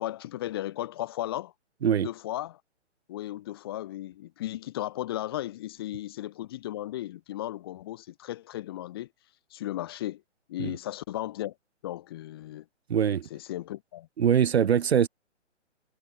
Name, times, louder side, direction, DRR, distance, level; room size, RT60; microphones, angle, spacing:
voice 1, 0.0-1.5 1.9-2.6 3.1-9.1 9.5-10.2 10.5-11.5 11.8-12.6 13.3-14.1, left 14 dB, 20° left, 0.7 m, -35 dB
voice 2, 12.9-13.3 14.2-15.1, right 8 dB, 60° right, 0.5 m, -23 dB
figure-of-eight pair, 130°, 37 cm